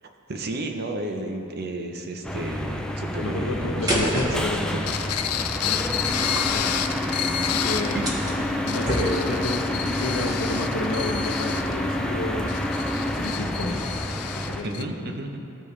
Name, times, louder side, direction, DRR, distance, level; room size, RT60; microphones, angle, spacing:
voice 1, 0.0-5.0 5.4-5.6 7.9-8.1 14.6-15.4, right 2 dB, 45° right, 4 dB, 0.7 m, -33 dB
sound 1, 2.2-14.6, left 1 dB, 5° left, 0.3 m, -28 dB
voice 2, 3.2-4.7 6.5-6.7 7.3-8.1 8.6-12.5 13.1-13.9 14.2-15.1, left 2 dB, 70° left, 3 dB, 0.9 m, -31 dB
sound 2, 3.9-9.6, equal, 15° right, 1.4 m, -31 dB
sound 3, 4.9-8.0 8.5-14.8, left 10 dB, 85° left, 0.4 m, -30 dB
14.5 x 5.2 x 3.2 m, 2.7 s
head